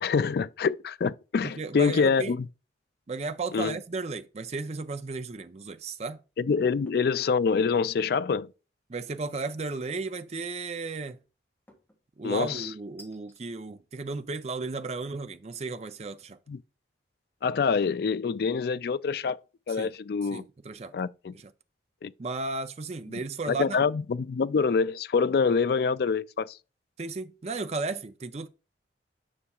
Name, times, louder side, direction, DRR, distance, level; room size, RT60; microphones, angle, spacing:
voice 1, 0.0-2.5 3.5-3.8 6.4-8.5 12.2-12.7 16.5-16.6 17.4-19.4 19.7-20.4 20.9-21.3 22.0-22.1 23.1-23.2 23.5-26.6, left 5 dB, 60° left, 0.3 m, -26 dB
voice 2, 1.6-2.4 3.1-6.2 8.9-11.2 12.2-16.4 19.8-19.9 20.3-20.9 21.3-21.4 22.2-23.8 27.0-28.5, right 3 dB, 35° right, 0.5 m, -34 dB
sound 1, 6.9-7.1 7.6-8.1 9.8-10.3 11.7-12.0 13.0-13.5, equal, 10° left, 1.7 m, -56 dB
9.7 x 5.7 x 2.4 m
head